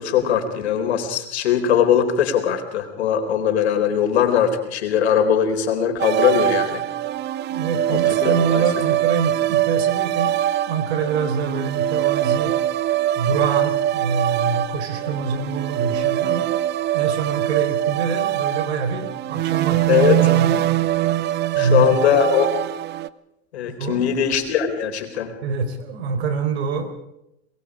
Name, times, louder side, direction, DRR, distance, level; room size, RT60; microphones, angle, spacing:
voice 1, 0.0-6.9 7.9-8.6 19.9-20.3 21.5-22.6 23.5-25.4, left 8 dB, 90° left, 6 dB, 4.1 m, -20 dB
sound 1, 6.0-23.1, right 13 dB, 35° right, 0.7 m, -22 dB
voice 2, 7.5-10.4 10.6-12.6 13.1-16.5 16.9-20.6 21.5-22.0 23.7-24.1 25.4-26.9, right 5 dB, 85° right, 9 dB, 4.4 m, -25 dB
24.5 x 21.5 x 5.0 m, 0.85 s
supercardioid pair, 125°, 32 cm